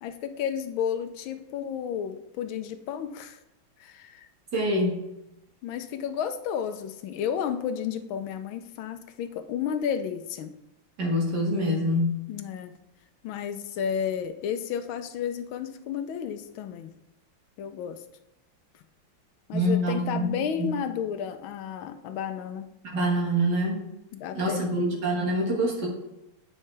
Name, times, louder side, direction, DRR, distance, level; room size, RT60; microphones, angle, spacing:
voice 1, 0.0-3.4 3.8-4.3 5.6-10.5 12.3-12.7 13.2-16.9 17.6-18.0 19.5-22.7 24.1-24.8, left 8 dB, 85° left, 9 dB, 1.4 m, -32 dB
voice 2, 4.5-5.0 11.0-12.2 19.5-20.7 22.8-23.8 24.3-25.9, equal, 55° right, -1 dB, 2.0 m, -25 dB
8.7 x 5.4 x 3.3 m, 0.88 s
omnidirectional pair, 2.2 m